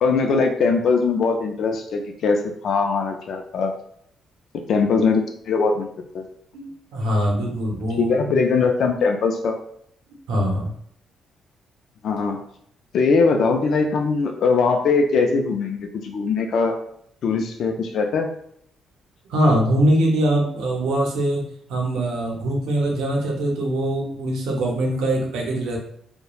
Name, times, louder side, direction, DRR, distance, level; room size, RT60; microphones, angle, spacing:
voice 1, 0.0-3.7 4.7-6.3 8.0-9.6 12.0-12.4 12.9-16.8 17.2-18.3, left 4 dB, 65° left, 3 dB, 0.3 m, -21 dB
voice 2, 6.5-8.1 10.3-10.7 19.3-25.8, right 1 dB, 85° right, 0 dB, 0.7 m, -22 dB
3.0 x 2.0 x 2.3 m, 0.67 s
cardioid pair, 90°, 0 cm